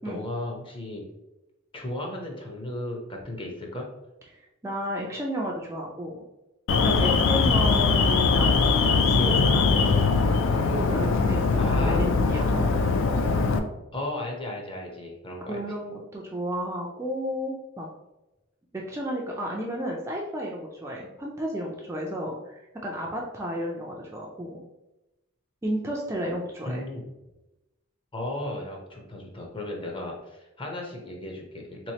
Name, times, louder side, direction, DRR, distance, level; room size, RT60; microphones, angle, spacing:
voice 1, 0.0-1.1 1.7-3.9 11.6-12.1 13.9-15.6 26.6-27.0 28.1-31.9, left 1 dB, 25° left, 0 dB, 0.7 m, -35 dB
voice 2, 4.3-6.2 6.8-9.7 10.7-12.6 15.4-17.9 18.7-24.6 25.6-26.8, equal, 15° right, -2 dB, 0.3 m, -32 dB
Alarm, 6.7-13.6, left 4 dB, 65° left, 0.3 m, -21 dB
3.5 x 3.0 x 2.8 m, 0.98 s
head